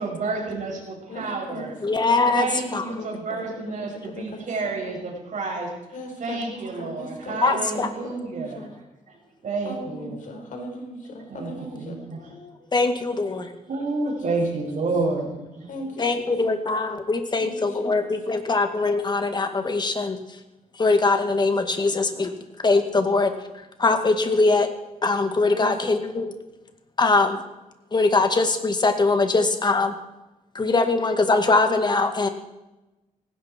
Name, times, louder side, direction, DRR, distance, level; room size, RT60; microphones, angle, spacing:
voice 1, 0.0-1.7 2.3-5.7 6.2-8.6 9.4-10.2 11.3-12.2 13.3-13.4 13.7-15.7, right 3 dB, 65° right, -1 dB, 6.5 m, -30 dB
voice 2, 1.1-2.4 2.7-5.0 5.9-8.7 9.6-12.0 15.7-16.5 17.4-18.1 21.8-22.0 25.5-25.8, left 1 dB, 70° left, 2 dB, 4.9 m, -38 dB
voice 3, 1.8-2.4 2.7-2.8 7.4-7.9 12.4-13.5 16.0-20.2 20.8-22.3 22.6-23.3 23.8-24.7 25.0-26.3 27.0-27.4 27.9-29.9 30.6-32.3, left 3 dB, 30° left, 7 dB, 2.0 m, -22 dB
18.5 x 16.5 x 4.6 m, 1.0 s
wide cardioid pair, 120°, 14 cm